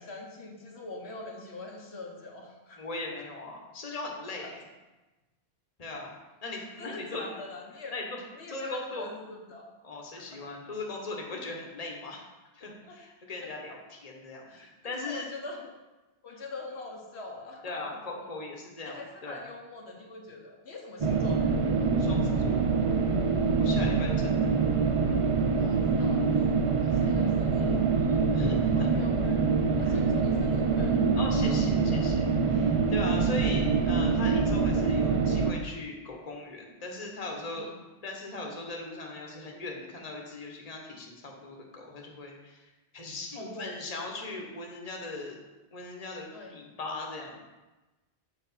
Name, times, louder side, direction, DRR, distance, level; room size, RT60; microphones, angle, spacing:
voice 1, 0.0-2.8 4.4-4.5 6.5-7.9 8.4-9.7 10.1-10.5 12.6-13.0 13.4-13.5 14.5-15.7 16.2-18.3 18.9-21.5 23.8-24.0 25.6-27.9 28.8-29.4 29.8-31.1 31.5-31.6 33.3-33.4 37.5-37.7 43.3-43.7 46.3-46.5, left 2 dB, 75° left, 0 dB, 1.4 m, -43 dB
voice 2, 2.8-4.6 5.8-6.1 6.4-7.2 7.9-8.2 8.5-9.1 9.8-12.2 12.5-14.4 14.8-15.3 17.6-19.4 22.0-22.6 23.6-24.6 28.3-28.9 31.1-37.7 38.0-42.7 42.9-45.4 45.7-47.4, left 2 dB, 35° left, 0 dB, 1.3 m, -39 dB
sound 1, 21.0-35.5, right 4 dB, 40° right, 0.5 m, -25 dB
7.1 x 5.1 x 5.6 m, 1.1 s
omnidirectional pair, 1.1 m